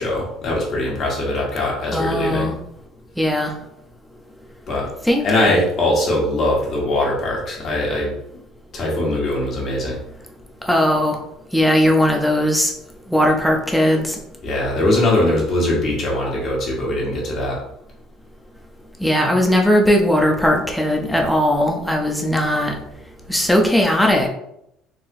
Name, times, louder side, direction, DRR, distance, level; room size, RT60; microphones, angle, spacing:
voice 1, 0.0-2.5 4.7-4.9 5.2-8.1 8.7-10.0 14.4-17.6, left 1 dB, 40° left, -3 dB, 1.2 m, -21 dB
voice 2, 1.9-2.6 3.2-3.5 5.0-5.6 10.7-11.2 11.5-12.7 13.1-14.2 19.0-22.7 23.3-24.3, equal, ahead, 1 dB, 0.5 m, -18 dB
4.0 x 2.8 x 2.6 m, 0.77 s
cardioid pair, 155°, 0 cm